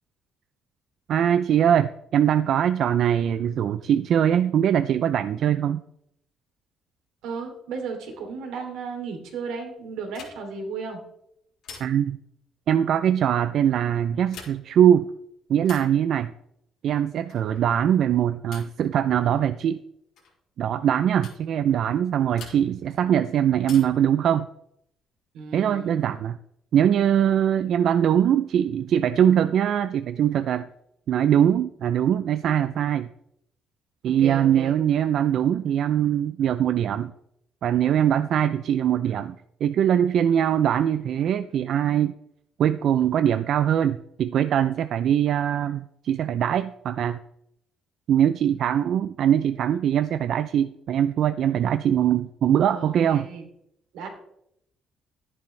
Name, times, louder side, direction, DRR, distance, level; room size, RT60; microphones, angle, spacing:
voice 1, 1.1-5.8 11.8-12.2 12.7-15.1 15.5-16.3 16.8-19.8 20.6-24.5 25.5-26.4 26.7-30.7 31.1-33.1 34.0-37.1 37.6-39.3 39.6-42.1 42.6-47.2 48.1-53.3, right 9 dB, 55° right, 11 dB, 0.4 m, -22 dB
voice 2, 7.2-11.0 25.3-26.0 34.2-34.7 52.7-53.4 53.9-54.1, right 5 dB, 85° right, 3 dB, 2.9 m, -34 dB
sound 1, 10.1-10.6 11.6-12.2 14.2-14.8 15.6-16.0 17.3-17.6 18.5-18.9 20.2-20.4 21.2-21.5 22.4-22.9 23.6-24.1 25.6-26.3, left 5 dB, 60° left, 5.1 m, -45 dB
13.5 x 10.5 x 3.2 m, 0.75 s
cardioid pair, 145°, 0 cm